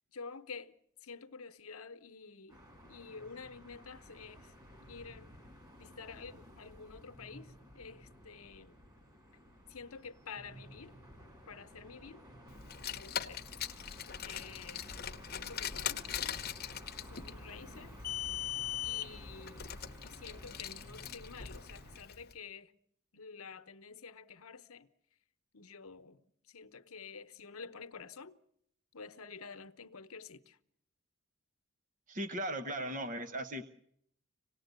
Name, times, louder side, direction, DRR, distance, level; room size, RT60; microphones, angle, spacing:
voice 1, 0.1-0.7 1.0-2.6 2.9-4.5 4.9-5.3 5.8-8.8 9.7-10.9 11.5-12.2 12.9-13.7 14.1-14.8 15.4-16.4 17.0-18.0 18.8-19.7 20.0-22.7 23.1-24.9 25.5-26.2 26.5-28.4 28.9-30.6, left 5 dB, 80° left, 1.0 m, -49 dB
sound 1, 2.5-22.0, equal, 20° right, 3.3 m, -54 dB
Car, 12.6-22.1, left 10 dB, 45° left, 0.9 m, -40 dB
voice 2, 32.1-33.6, right 1 dB, 35° right, 0.9 m, -37 dB
26.0 x 18.5 x 8.1 m
head